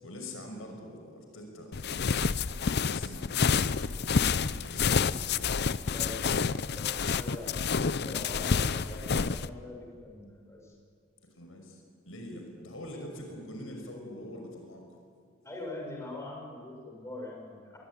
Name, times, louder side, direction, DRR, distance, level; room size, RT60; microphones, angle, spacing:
voice 1, 0.0-2.1 2.8-4.4 4.7-6.8 11.3-14.9, left 1 dB, 75° left, 3 dB, 5.8 m, -45 dB
sound 1, 1.7-9.5, left 5 dB, 55° left, 0.6 m, -28 dB
voice 2, 5.9-6.3 6.8-7.6 7.9-10.7 15.4-17.8, left 2 dB, 15° left, -1 dB, 6.3 m, -43 dB
24.0 x 22.0 x 10.0 m, 2.1 s
head